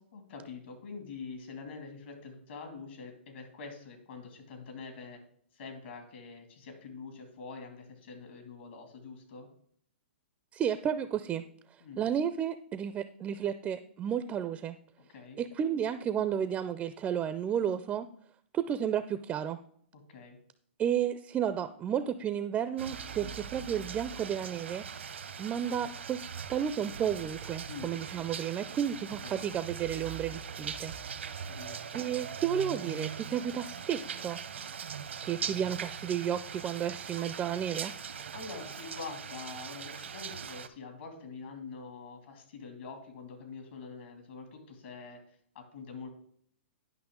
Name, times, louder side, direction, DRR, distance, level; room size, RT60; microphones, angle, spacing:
voice 1, 0.1-5.2 5.5-9.5 11.8-12.0 15.0-15.4 19.9-20.4 23.2-23.3 27.7-27.9 29.2-29.4 31.4-31.8 38.3-45.2 45.5-46.1, left 4 dB, 65° left, 4 dB, 2.4 m, -45 dB
voice 2, 10.5-11.4 12.0-14.8 15.4-18.1 18.5-19.6 20.8-24.8 25.4-30.9 31.9-34.4 35.2-37.9, right 9 dB, 20° right, 12 dB, 0.4 m, -32 dB
sound 1, 22.8-40.7, right 7 dB, 85° right, 0.8 m, -41 dB
11.0 x 5.6 x 3.7 m, 0.63 s
hypercardioid pair, 135°, 6 cm